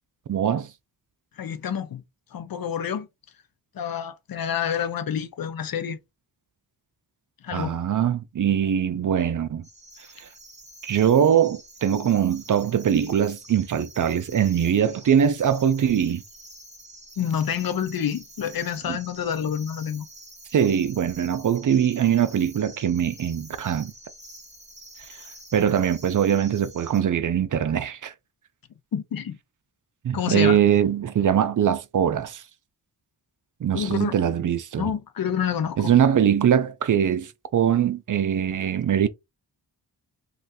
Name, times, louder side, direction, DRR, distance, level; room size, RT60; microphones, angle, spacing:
voice 1, 0.3-0.7 7.5-9.6 10.2-10.3 10.8-16.2 18.9-19.0 20.5-23.9 25.5-28.1 30.0-32.4 33.6-34.9 35.8-39.1, right 9 dB, 50° right, 0.5 m, -22 dB
voice 2, 1.4-2.0 2.3-3.1 3.7-6.0 7.4-7.7 17.2-20.1 28.9-29.4 30.1-30.6 33.7-34.1 34.8-35.9, left 8 dB, 60° left, 0.6 m, -28 dB
sound 1, 9.6-27.0, right 1 dB, 15° right, 1.3 m, -47 dB
3.1 x 2.4 x 2.7 m
cardioid pair, 70°, 41 cm